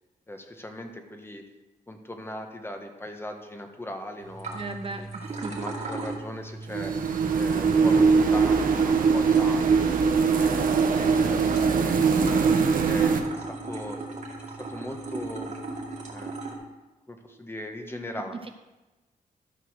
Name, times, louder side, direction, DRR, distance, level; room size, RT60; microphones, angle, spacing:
voice 1, 0.3-1.4 1.9-5.1 5.6-6.9 7.3-10.0 10.4-12.4 12.9-14.0 14.4-15.5 16.1-16.4 17.1-18.5, left 1 dB, 15° left, 4 dB, 1.3 m, -39 dB
sound 1, 4.2-16.5, right 3 dB, 55° right, 2.2 m, -38 dB
voice 2, 4.5-5.7 11.6-12.1 17.3-17.4, right 3 dB, 40° right, 6 dB, 0.8 m, -38 dB
sound 2, 6.7-13.2, right 5 dB, 75° right, 1.0 m, -22 dB
13.0 x 4.7 x 6.3 m, 1.1 s
cardioid pair, 80°, 15 cm